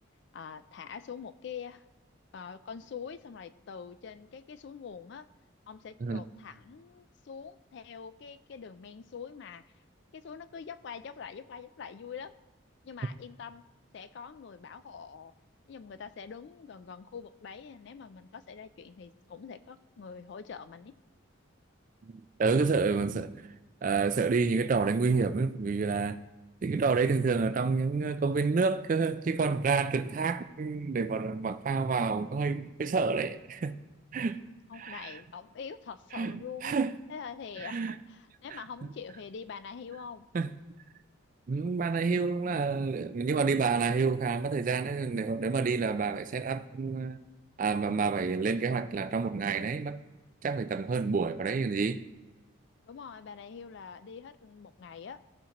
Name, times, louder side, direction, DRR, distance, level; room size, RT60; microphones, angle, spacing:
voice 1, 0.3-1.8 2.3-5.3 5.7-9.6 10.1-12.4 12.8-13.7 13.9-15.3 15.7-20.9 34.7-36.8 37.1-40.3 52.8-55.2, left 6 dB, 55° left, 0.3 m, -44 dB
voice 2, 22.4-23.4 23.8-26.2 26.6-33.8 34.1-34.4 34.8-35.1 36.1-36.3 36.6-36.9 37.6-37.9 38.5-38.6 40.3-40.5 41.5-47.2 47.6-50.0 50.4-52.1, right 4 dB, 40° right, 0.3 m, -29 dB
15.5 x 5.7 x 3.0 m
head